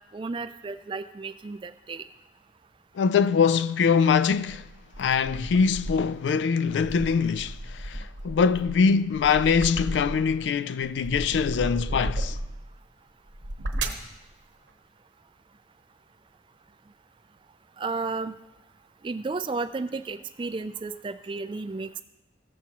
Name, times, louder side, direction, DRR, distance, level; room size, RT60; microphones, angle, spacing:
voice 1, 0.1-2.0 17.8-18.3 19.0-22.0, right 3 dB, 25° right, 0.3 m, -33 dB
voice 2, 3.0-4.7 5.0-12.4, left 6 dB, 80° left, 0.3 m, -23 dB
sound 1, 4.3-6.2 6.7-10.4 10.8-12.7 13.3-14.1, right 1 dB, 90° right, 0.9 m, -34 dB
15.0 x 7.2 x 2.9 m
head